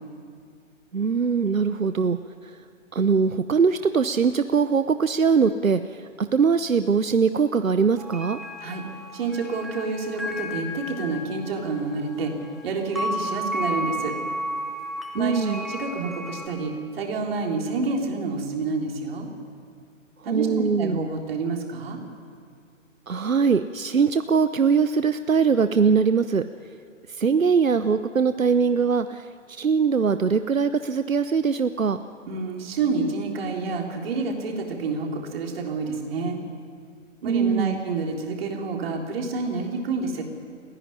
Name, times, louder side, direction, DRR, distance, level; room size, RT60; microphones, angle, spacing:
voice 1, 0.9-2.2 2.4-2.6 2.9-8.4 15.2-15.7 20.2-21.0 23.1-26.4 27.1-32.0 37.2-37.8, right 5 dB, 85° right, 11 dB, 0.8 m, -22 dB
sound 1, 8.0-16.5, equal, ahead, 0.5 m, -33 dB
voice 2, 9.1-12.4 12.6-14.1 15.1-19.3 20.2-22.0 32.3-36.4 37.2-40.2, right 4 dB, 45° right, 1 dB, 3.9 m, -28 dB
29.5 x 11.0 x 9.8 m, 2.2 s
figure-of-eight pair, 125°, 39 cm